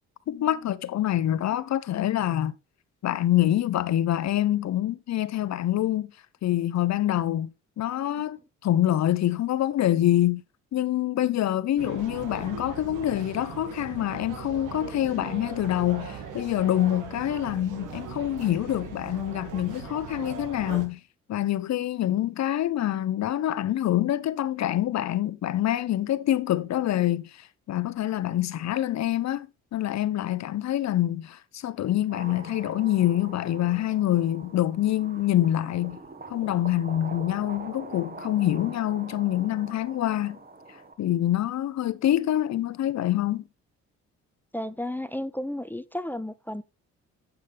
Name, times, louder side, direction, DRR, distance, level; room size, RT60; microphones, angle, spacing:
voice 1, 0.3-2.5 3.0-6.1 6.4-10.4 10.7-21.0 21.3-36.0 36.3-40.4 41.0-43.5, left 12 dB, 65° left, 0.8 m, -26 dB
sound 1, 11.8-20.9, right 6 dB, 85° right, 2.1 m, -39 dB
sound 2, 32.1-40.9, right 3 dB, 30° right, 1.7 m, -44 dB
voice 2, 44.5-46.6, left 1 dB, 5° left, 0.5 m, -33 dB
10.5 x 7.1 x 3.4 m
cardioid pair, 90°, 30 cm